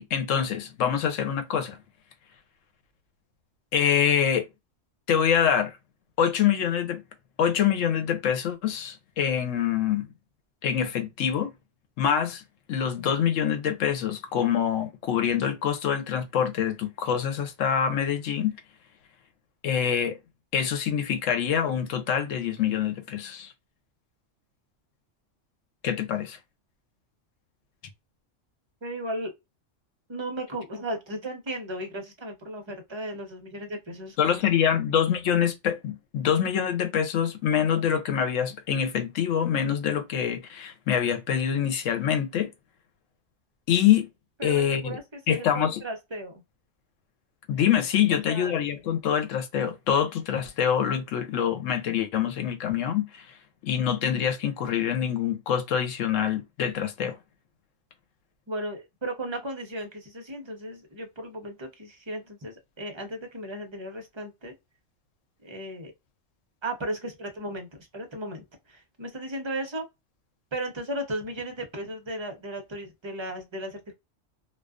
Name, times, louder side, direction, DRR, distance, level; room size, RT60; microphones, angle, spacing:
voice 1, 0.0-1.8 3.7-4.5 5.1-5.8 6.2-7.0 7.4-10.1 10.6-11.5 12.0-12.4 12.7-18.5 19.6-20.2 20.5-23.5 25.8-26.4 34.2-42.5 43.7-44.1 44.4-45.0 45.3-45.8 47.5-53.3 53.6-57.2, left 8 dB, 85° left, 1.0 m, -25 dB
voice 2, 28.8-29.3 30.1-34.9 44.4-46.4 48.3-48.6 58.5-64.5 65.4-65.9 66.6-69.9 70.5-73.9, right 1 dB, 30° right, 0.6 m, -35 dB
2.3 x 2.3 x 2.3 m
omnidirectional pair, 1.3 m